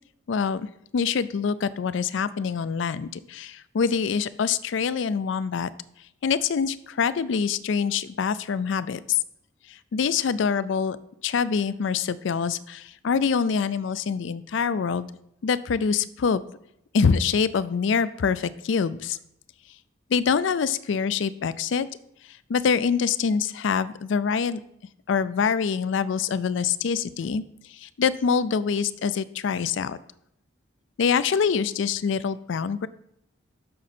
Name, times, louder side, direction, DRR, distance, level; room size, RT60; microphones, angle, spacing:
voice 1, 0.3-0.7 0.9-5.7 6.2-9.2 9.7-11.0 11.2-15.1 15.4-16.4 16.9-19.2 20.1-21.9 22.5-24.6 25.1-27.4 27.7-30.0 31.0-32.9, left 6 dB, 70° left, 16 dB, 0.4 m, -25 dB
7.6 x 6.4 x 4.3 m, 0.76 s
head